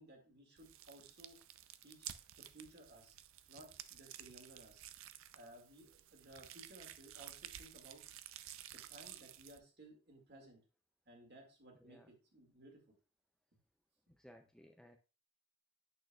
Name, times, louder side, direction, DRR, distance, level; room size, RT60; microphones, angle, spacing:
voice 1, 0.0-1.4 1.8-2.1 2.4-3.2 3.5-4.8 5.3-8.0 8.7-10.6 11.1-13.0, right 1 dB, 50° right, 3 dB, 1.9 m, -59 dB
sound 1, 0.6-9.6, right 12 dB, 70° right, 0.4 m, -53 dB
voice 2, 14.2-15.0, left 1 dB, 5° left, 4 dB, 0.3 m, -60 dB
8.7 x 6.2 x 2.3 m, 0.34 s
head